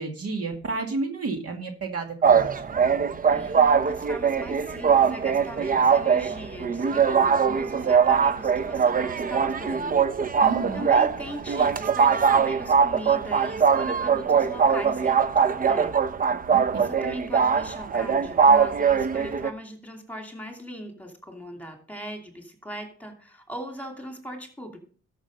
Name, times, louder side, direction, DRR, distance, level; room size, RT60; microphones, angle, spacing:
voice 1, 0.0-2.6 10.4-10.9 16.5-16.9, right 3 dB, 50° right, 4 dB, 2.0 m, -31 dB
sound 1, 2.2-19.5, right 6 dB, 30° right, 0.6 m, -22 dB
voice 2, 3.3-10.0 10.7-15.3 15.6-15.9 16.8-24.8, equal, 5° left, 4 dB, 2.7 m, -39 dB
13.0 x 6.1 x 5.3 m, 0.42 s
cardioid pair, 90°, 30 cm